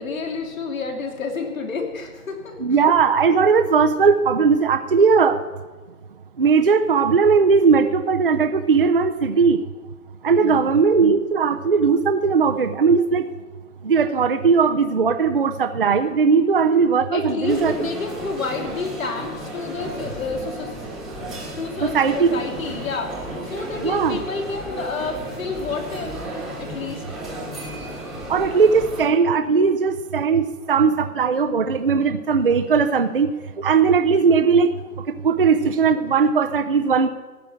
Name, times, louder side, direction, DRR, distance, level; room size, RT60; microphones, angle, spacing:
voice 1, 0.0-2.8 10.4-10.8 17.1-20.7 21.6-26.2 26.6-27.0, left 4 dB, 60° left, 2 dB, 2.9 m, -30 dB
voice 2, 2.6-5.4 6.4-9.6 10.2-13.2 13.8-17.7 21.8-22.3 23.8-24.2 28.3-33.3 33.6-34.7 35.2-37.1, right 5 dB, 40° right, 7 dB, 0.5 m, -18 dB
sound 1, 17.4-29.1, right 1 dB, ahead, 1.3 m, -34 dB
14.0 x 6.0 x 9.8 m, 1.3 s
hypercardioid pair, 170°, 46 cm